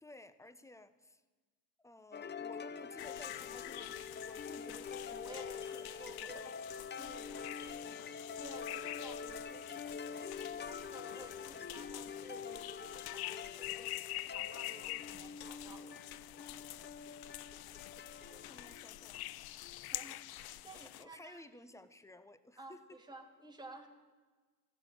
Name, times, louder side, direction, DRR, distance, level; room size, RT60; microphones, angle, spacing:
voice 1, 0.0-1.2 1.8-6.5 18.0-19.3 20.7-23.0, left 1 dB, 5° left, 13 dB, 1.1 m, -56 dB
sound 1, 2.1-20.0, left 6 dB, 25° left, 0.7 m, -46 dB
sound 2, 3.0-21.0, left 16 dB, 60° left, 0.6 m, -47 dB
voice 2, 4.5-6.5 7.0-9.8 10.3-16.0 18.3-18.5 19.9-21.5 22.6-23.9, right 2 dB, 10° right, 1 dB, 3.0 m, -54 dB
15.0 x 9.4 x 8.8 m, 1.3 s
supercardioid pair, 70°, 42 cm